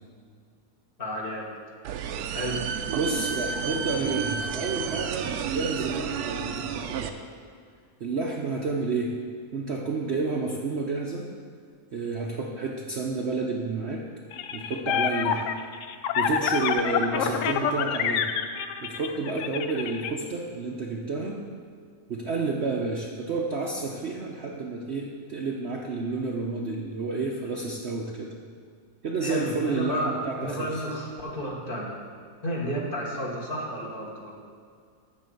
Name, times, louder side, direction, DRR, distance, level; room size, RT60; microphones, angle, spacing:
voice 1, 1.0-1.5 2.3-2.7 17.1-17.4 29.2-32.0 32.4-34.4, equal, 35° left, -3 dB, 1.5 m, -32 dB
sound 1, 1.8-7.1, right 7 dB, 75° right, 1.1 m, -31 dB
voice 2, 2.9-7.1 8.0-9.1 9.5-11.3 11.9-14.0 14.5-15.5 16.1-18.3 18.8-21.4 22.1-28.3 29.0-30.8, right 3 dB, 55° right, -1 dB, 0.8 m, -30 dB
sound 2, 14.3-20.1, left 8 dB, 70° left, 0.8 m, -27 dB
11.0 x 3.9 x 7.7 m, 2.2 s
omnidirectional pair, 1.7 m